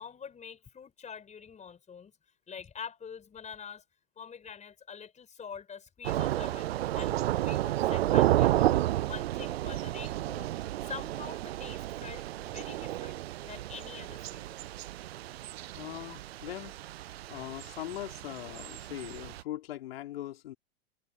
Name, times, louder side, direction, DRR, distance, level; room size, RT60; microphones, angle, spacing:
voice 1, 0.0-2.1 2.5-3.8 4.2-10.5 10.8-14.6, left 7 dB, 20° left, 5.6 m, -45 dB
Thunder / Rain, 6.0-19.4, right 14 dB, 70° right, 0.6 m, -31 dB
voice 2, 15.8-16.8 17.0-20.6, left 14 dB, 70° left, 3.7 m, -41 dB
hypercardioid pair, 95°, 32 cm